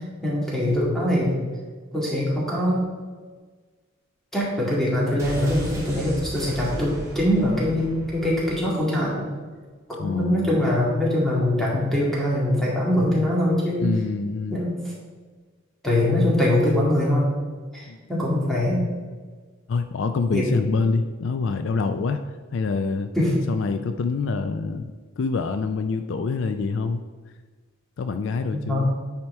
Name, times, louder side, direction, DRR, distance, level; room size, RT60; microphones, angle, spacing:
voice 1, 0.2-1.4 1.9-2.8 4.3-9.2 10.0-13.8 14.5-14.9 15.8-17.3 17.7-18.8 20.3-20.4 21.9-22.0 23.1-23.3 28.5-28.9, left 1 dB, ahead, -6 dB, 2.1 m, -23 dB
sound 1, 5.2-9.0 9.2-9.3, equal, 15° right, 2.1 m, -36 dB
voice 2, 10.0-10.6 13.8-14.6 17.9-18.0 19.7-22.2 22.5-23.1 23.5-27.0 28.0-28.9, left 4 dB, 60° left, 9 dB, 0.4 m, -26 dB
9.4 x 4.5 x 4.4 m, 1.4 s
head